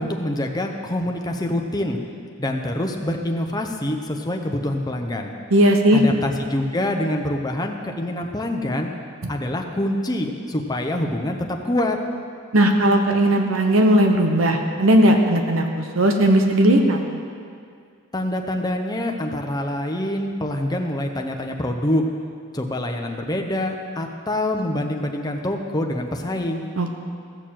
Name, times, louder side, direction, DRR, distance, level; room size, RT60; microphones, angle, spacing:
voice 1, 0.0-2.0 2.4-5.3 5.9-8.9 9.3-12.0 18.1-22.1 22.5-26.7, left 1 dB, 20° left, 3 dB, 0.9 m, -25 dB
voice 2, 5.5-6.0 9.2-9.3 12.5-17.0 26.8-26.9, right 1 dB, 80° right, 3 dB, 1.2 m, -17 dB
15.5 x 6.7 x 7.6 m, 2.2 s
head